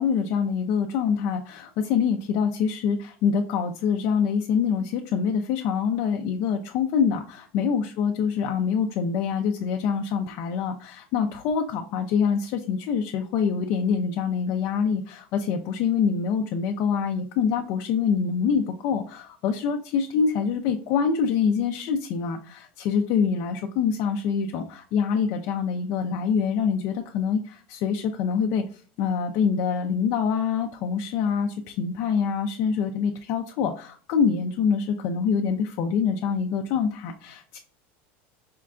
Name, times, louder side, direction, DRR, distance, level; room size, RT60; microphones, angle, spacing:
voice 1, 0.0-37.6, left 6 dB, 55° left, 4 dB, 0.4 m, -25 dB
4.4 x 2.2 x 2.4 m, 0.43 s
supercardioid pair, 130°, 7 cm